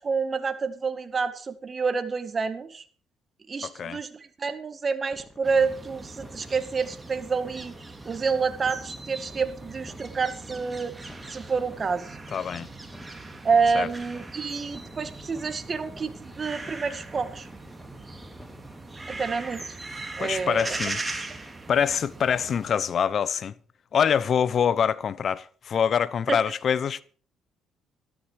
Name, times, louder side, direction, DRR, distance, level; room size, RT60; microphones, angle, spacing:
voice 1, 0.0-2.8 3.5-7.8 8.1-10.9 11.3-12.2 13.4-17.5 19.1-19.8 20.2-20.8 26.3-26.4, right 5 dB, 35° right, 2.0 m, -28 dB
voice 2, 3.6-4.0 12.3-12.7 13.7-13.9 20.2-21.0 21.7-23.5 23.9-27.0, left 7 dB, 55° left, 0.9 m, -25 dB
sound 1, 5.1-19.6, left 2 dB, 20° left, 2.2 m, -50 dB
sound 2, 5.4-22.7, right 2 dB, 20° right, 2.8 m, -40 dB
13.0 x 12.5 x 4.7 m
supercardioid pair, 75°, 0 cm